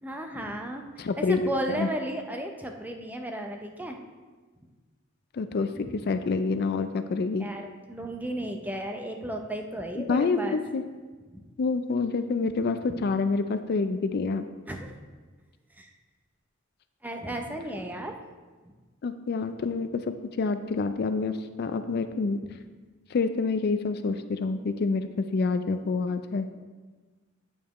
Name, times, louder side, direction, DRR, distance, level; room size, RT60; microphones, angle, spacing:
voice 1, 0.0-4.0 5.8-5.9 7.4-10.6 11.3-11.5 14.7-15.0 15.8-15.9 17.0-18.1 18.7-18.8, right 1 dB, 10° right, 3 dB, 0.5 m, -34 dB
voice 2, 1.0-1.4 1.7-1.9 5.3-5.7 6.1-7.5 10.1-10.8 11.6-14.4 19.0-22.4 23.1-26.5, left 4 dB, 50° left, 10 dB, 0.4 m, -27 dB
8.7 x 7.2 x 3.0 m, 1.4 s
head